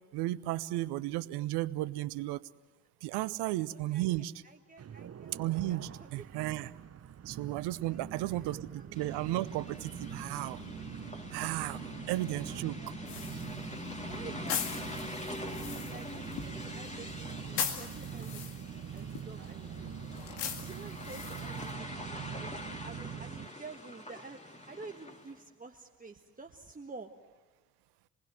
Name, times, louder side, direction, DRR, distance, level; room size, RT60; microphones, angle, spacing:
voice 1, 0.1-2.4 3.0-4.3 5.4-6.7 7.3-8.7 9.0-10.6 11.3-11.8 12.1-12.8, right 16 dB, 65° right, 18 dB, 0.8 m, -34 dB
voice 2, 3.1-4.1 4.4-6.6 7.9-9.4 11.9-13.6 14.0-14.9 15.2-20.2 20.6-22.6 22.8-24.4 24.7-27.1, right 3 dB, 20° right, 3 dB, 1.6 m, -51 dB
sound 1, 4.8-23.5, right 8 dB, 35° right, 0.9 m, -44 dB
sound 2, 8.9-25.4, left 1 dB, 15° left, 3.3 m, -45 dB
sound 3, 13.1-21.7, left 8 dB, 70° left, 2.3 m, -41 dB
27.0 x 20.0 x 7.8 m, 1.2 s
hypercardioid pair, 45°, 44 cm